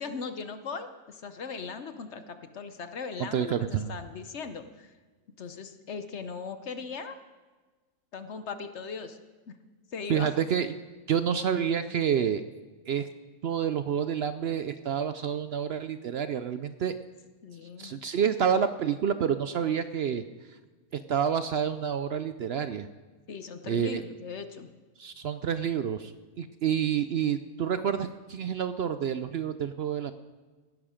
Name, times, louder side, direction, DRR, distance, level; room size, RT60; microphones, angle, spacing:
voice 1, 0.0-4.9 5.4-7.2 8.1-9.2 9.5-9.6 9.9-10.3 17.4-18.0 23.3-24.7, left 5 dB, 55° left, 10 dB, 1.0 m, -39 dB
voice 2, 3.2-3.9 10.1-10.8 11.1-12.4 12.9-13.1 13.4-16.9 17.8-20.2 20.9-22.9 23.7-24.0 25.0-30.1, right 8 dB, 70° right, 11 dB, 0.6 m, -28 dB
18.0 x 11.0 x 5.1 m, 1.3 s
omnidirectional pair, 1.6 m